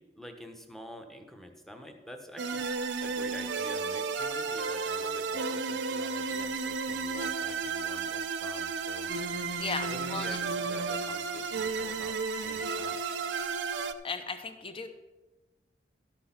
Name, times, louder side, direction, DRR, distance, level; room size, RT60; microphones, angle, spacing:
voice 1, 0.0-2.7 3.0-9.1 9.8-13.2 13.7-13.8, equal, ahead, 4 dB, 1.0 m, -48 dB
sound 1, 2.4-13.9, right 4 dB, 70° right, 0.6 m, -33 dB
voice 2, 9.6-10.4 14.0-14.9, left 4 dB, 30° left, 7 dB, 0.9 m, -36 dB
12.5 x 6.2 x 5.8 m, 1.2 s
head